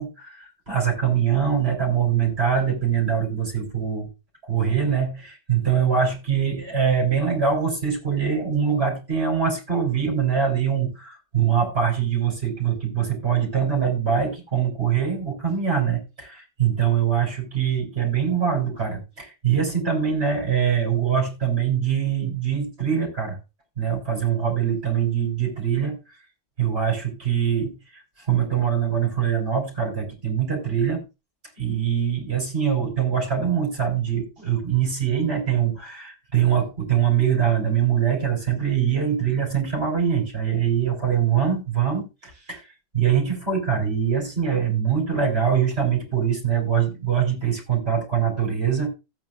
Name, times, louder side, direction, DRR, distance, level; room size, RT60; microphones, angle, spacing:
voice 1, 0.0-4.1 4.4-23.4 23.8-26.0 26.6-28.0 28.3-31.0 31.6-42.6 42.9-48.9, right 8 dB, 55° right, 0 dB, 5.0 m, -23 dB
16.0 x 9.0 x 2.4 m, 0.27 s
omnidirectional pair, 1.3 m